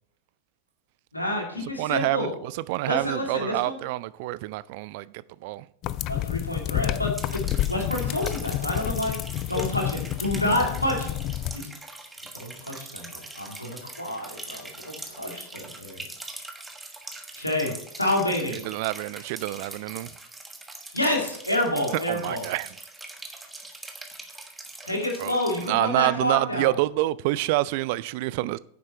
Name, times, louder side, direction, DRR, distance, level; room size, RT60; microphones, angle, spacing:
voice 1, 1.1-2.3 2.8-3.8 6.0-9.2 9.5-11.1 11.5-11.7 12.3-16.0 17.3-18.6 20.9-22.4 24.8-26.7, left 1 dB, 85° left, 2.6 m, -28 dB
voice 2, 1.8-5.7 18.5-20.1 22.1-22.7 25.2-25.4 25.7-28.6, right 18 dB, 50° right, 0.4 m, -27 dB
sound 1, 5.8-11.6, left 14 dB, 35° left, 0.4 m, -29 dB
sound 2, 7.1-25.7, right 2 dB, 10° right, 1.3 m, -42 dB
9.8 x 7.4 x 4.3 m
figure-of-eight pair, 90°, 0 cm